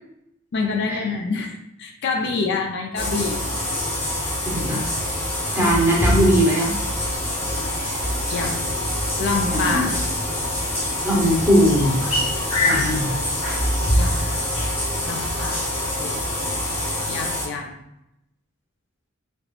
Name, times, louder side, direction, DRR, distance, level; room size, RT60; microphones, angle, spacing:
voice 1, 0.5-3.4 8.3-8.7 9.2-10.0 13.9-14.3 15.0-16.2 17.1-17.8, left 4 dB, 55° left, 3 dB, 0.4 m, -27 dB
sound 1, 3.0-17.5, left 1 dB, 30° left, 1.1 m, -25 dB
voice 2, 4.5-4.9 5.6-6.7 7.8-8.0 9.5-9.9 11.0-12.2 12.7-13.1, equal, 10° right, -4 dB, 0.7 m, -20 dB
sound 2, 6.6-15.1, left 2 dB, 80° left, 1.4 m, -32 dB
3.4 x 2.8 x 2.4 m, 0.84 s
head